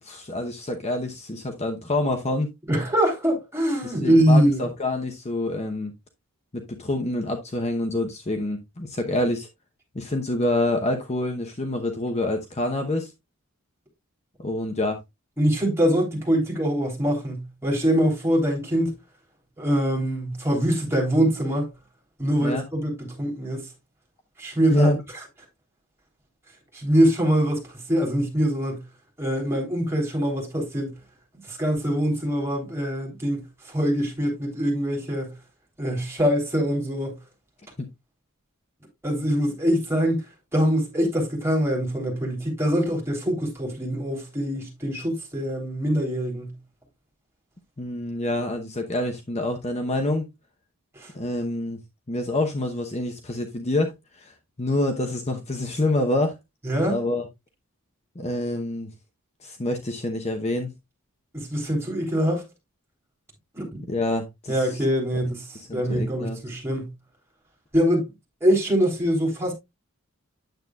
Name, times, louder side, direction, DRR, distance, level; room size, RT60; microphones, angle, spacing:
voice 1, 0.0-2.5 3.8-5.9 6.5-9.5 9.9-13.1 14.4-15.0 22.4-22.6 24.7-25.0 37.8-37.9 47.8-50.3 51.1-51.8 52.1-56.4 56.9-57.3 58.1-58.9 59.4-60.7 63.9-64.8 65.5-66.4, left 2 dB, 30° left, 0.9 m, -27 dB
voice 2, 2.7-4.6 15.4-18.9 19.6-21.7 22.2-23.7 24.4-24.9 26.7-28.8 29.2-30.9 31.5-35.3 35.8-37.2 39.0-40.2 40.5-46.5 50.9-51.1 56.6-57.0 61.3-62.4 63.5-63.8 64.5-66.9 67.7-68.1 68.4-69.5, equal, 10° right, 3.4 m, -23 dB
9.2 x 7.9 x 2.3 m
head